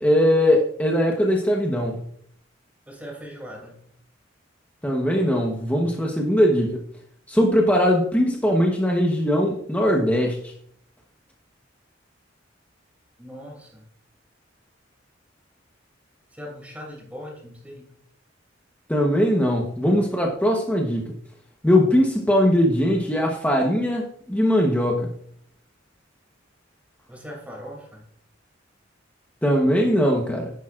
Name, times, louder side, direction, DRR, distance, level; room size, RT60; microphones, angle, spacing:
voice 1, 0.0-2.0 4.8-6.8 7.3-10.5 18.9-21.1 21.6-25.1 29.4-30.5, equal, 10° left, 0 dB, 1.1 m, -20 dB
voice 2, 2.9-3.8 13.2-13.9 16.3-17.9 27.1-28.0, equal, 10° right, -1 dB, 2.7 m, -40 dB
10.5 x 10.5 x 2.5 m, 0.65 s
head